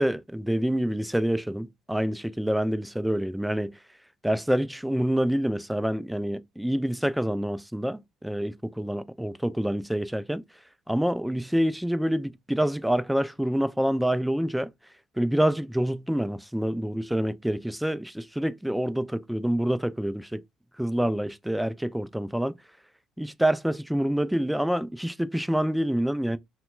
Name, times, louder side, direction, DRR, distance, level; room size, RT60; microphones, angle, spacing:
voice 1, 0.0-3.7 4.2-10.4 10.9-14.7 15.2-20.4 20.8-22.5 23.2-26.4, equal, 5° right, 0.3 m, -27 dB
2.8 x 2.1 x 3.0 m
hypercardioid pair, 60°, 0 cm